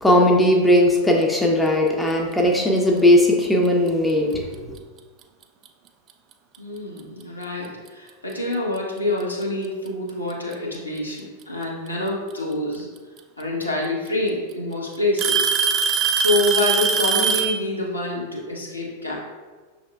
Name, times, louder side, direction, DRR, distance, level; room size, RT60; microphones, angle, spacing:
voice 1, 0.0-4.4, left 1 dB, 5° left, 0 dB, 0.6 m, -17 dB
Alarm / Tick-tock, 3.7-3.9 4.8-4.9 5.7-5.8 7.4-7.5 8.8-8.9 10.1-10.5 12.3-12.4 13.6-13.7 14.1-14.5 15.2-17.6, right 6 dB, 30° right, 0.3 m, -21 dB
voice 2, 6.6-12.9 13.4-15.5 16.1-19.2, left 2 dB, 85° left, -4 dB, 1.1 m, -26 dB
6.2 x 3.4 x 2.3 m, 1.4 s
figure-of-eight pair, 90°, 0 cm